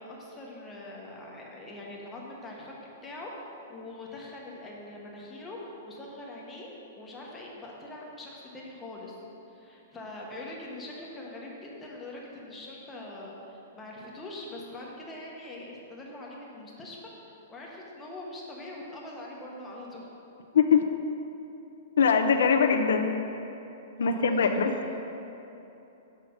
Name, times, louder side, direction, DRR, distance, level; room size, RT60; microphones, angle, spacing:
voice 1, 0.0-2.7 3.0-5.6 5.8-9.2 9.5-20.1 24.0-25.0, left 2 dB, 10° left, -3 dB, 0.9 m, -43 dB
voice 2, 22.0-23.3 24.0-25.0, left 6 dB, 85° left, 5 dB, 0.6 m, -23 dB
6.8 x 4.9 x 6.4 m, 3.0 s
hypercardioid pair, 180°, 0 cm